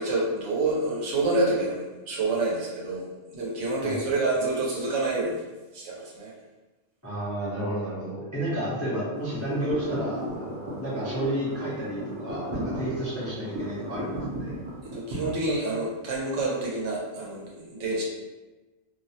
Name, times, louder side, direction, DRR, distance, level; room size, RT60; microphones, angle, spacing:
voice 1, 0.0-3.1 3.3-5.4 5.7-6.3 14.9-18.0, right 2 dB, 90° right, -4 dB, 1.0 m, -28 dB
voice 2, 7.0-14.5, right 1 dB, 25° left, -8 dB, 0.3 m, -31 dB
sound 1, 9.1-15.3, equal, 45° right, 0.5 m, -35 dB
2.5 x 2.0 x 2.7 m, 1.2 s
omnidirectional pair, 1.2 m